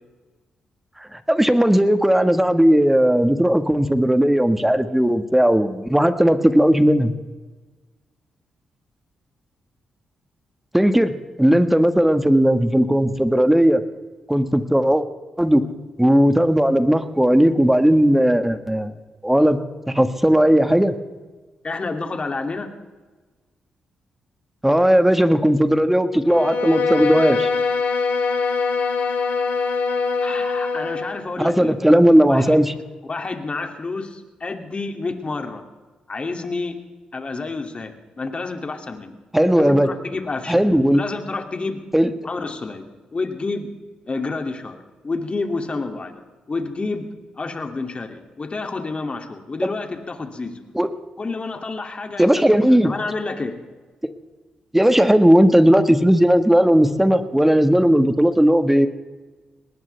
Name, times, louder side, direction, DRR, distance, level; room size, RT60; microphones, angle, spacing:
voice 1, 1.1-7.1 10.7-11.1 11.4-13.8 14.3-15.0 15.4-15.6 16.0-18.9 19.2-19.6 19.9-20.9 24.6-27.5 31.4-32.7 39.3-39.9 40.5-41.0 41.9-42.1 50.7-50.9 52.2-52.9 54.7-58.9, equal, 10° right, 9 dB, 1.6 m, -16 dB
voice 2, 21.6-22.7 30.2-31.8 32.3-32.6 33.1-35.6 36.1-36.8 37.1-39.2 39.6-40.5 40.9-41.8 42.2-42.9 43.1-43.7 44.1-44.8 45.0-46.2 46.5-47.1 47.4-50.6 51.2-52.3 52.6-53.6, left 3 dB, 40° left, 5 dB, 2.7 m, -29 dB
Bowed string instrument, 26.2-31.2, left 4 dB, 65° left, 2.4 m, -22 dB
21.5 x 19.5 x 3.5 m, 1.3 s
hypercardioid pair, 45°, 3 cm